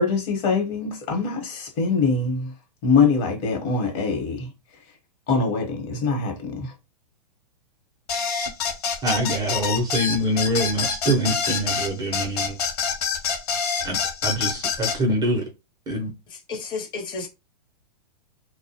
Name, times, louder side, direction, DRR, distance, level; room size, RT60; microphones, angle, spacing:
voice 1, 0.0-2.5 2.8-4.5 5.3-6.6, left 4 dB, 45° left, 1.0 m, -23 dB
sound 1, 8.1-15.0, left 6 dB, 65° left, 0.8 m, -26 dB
voice 2, 9.0-12.5 13.8-14.0 14.2-15.4 15.9-16.1, right 1 dB, 20° right, 0.5 m, -24 dB
voice 3, 16.3-17.3, left 4 dB, 20° left, 0.7 m, -32 dB
2.4 x 2.1 x 2.8 m
hypercardioid pair, 125°, 21 cm